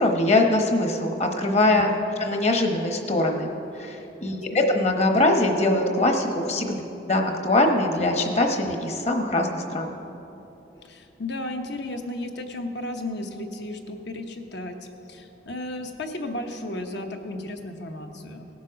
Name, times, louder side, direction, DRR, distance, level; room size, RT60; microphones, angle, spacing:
voice 1, 0.0-1.9 2.2-3.5 3.7-6.8 7.1-9.9, left 2 dB, 35° left, 3 dB, 1.0 m, -22 dB
voice 2, 1.7-2.0 4.2-4.6 10.8-14.8 15.1-18.5, left 1 dB, 70° left, 5 dB, 1.0 m, -34 dB
17.5 x 7.3 x 5.1 m, 3.0 s
head